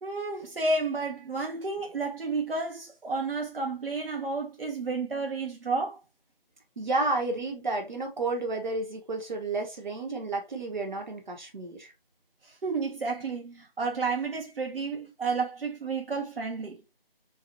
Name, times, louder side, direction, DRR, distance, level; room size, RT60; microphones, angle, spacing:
voice 1, 0.0-6.0 12.4-16.8, right 3 dB, 75° right, 0.8 m, -31 dB
voice 2, 6.8-11.9, right 2 dB, 50° right, 1.0 m, -31 dB
3.0 x 2.3 x 2.5 m
figure-of-eight pair, 170°, 29 cm